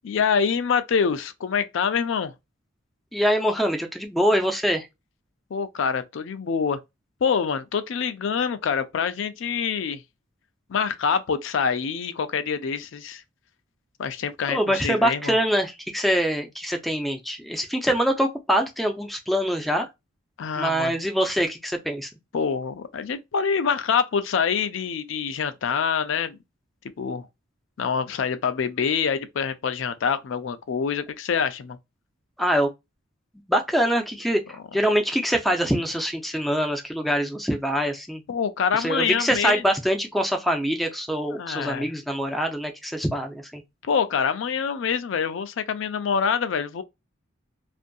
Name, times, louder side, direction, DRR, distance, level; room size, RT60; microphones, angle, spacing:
voice 1, 0.0-2.3 5.5-6.8 7.2-10.0 10.7-13.2 14.0-15.3 20.4-20.9 22.3-26.4 27.0-27.3 27.8-31.8 38.3-39.6 41.3-41.9 43.8-46.8, left 6 dB, 65° left, 0.4 m, -25 dB
voice 2, 3.1-4.9 14.5-19.9 20.6-22.1 32.4-32.7 33.5-38.2 38.7-43.6, equal, ahead, 0.4 m, -24 dB
2.6 x 2.5 x 2.2 m
head